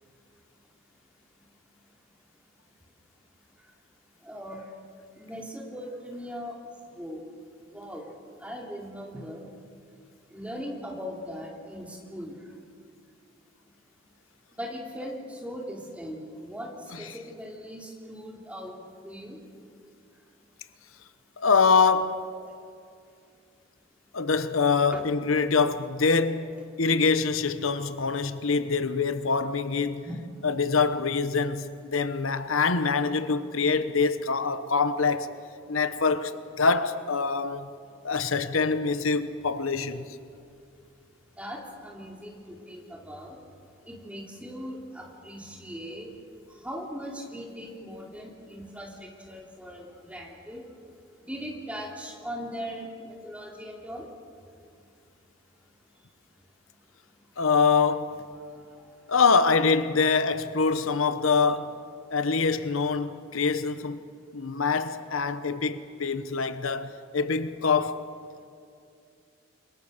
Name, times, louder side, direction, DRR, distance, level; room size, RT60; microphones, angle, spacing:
voice 1, 4.3-4.6 5.2-6.6 7.0-7.2 7.7-8.1 8.4-9.5 10.3-12.3 14.6-16.7 17.0-18.8 19.0-19.4 24.9-25.0 30.0-30.2 41.4-43.4 43.9-46.1 46.6-50.6 51.3-54.1, equal, 5° right, 3.2 m, -39 dB
voice 2, 21.4-22.2 24.1-26.5 26.8-30.0 30.4-35.3 35.7-37.7 38.0-40.0 57.4-58.2 59.1-61.8 62.1-64.0 64.3-68.0, left 4 dB, 85° left, 1.0 m, -25 dB
28.0 x 23.0 x 6.7 m
head